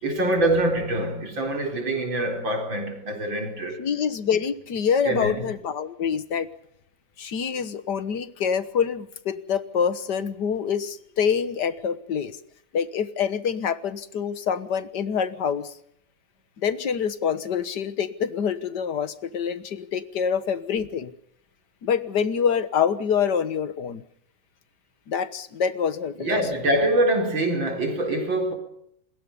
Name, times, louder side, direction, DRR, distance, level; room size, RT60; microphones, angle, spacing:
voice 1, 0.0-3.8 5.0-5.5 26.2-28.5, right 1 dB, 90° right, 5.1 m, -24 dB
voice 2, 3.8-6.5 7.2-12.4 12.7-15.7 16.6-21.1 21.8-24.0 25.1-26.4, left 7 dB, 65° left, 1.8 m, -26 dB
28.0 x 21.0 x 5.5 m
omnidirectional pair, 2.0 m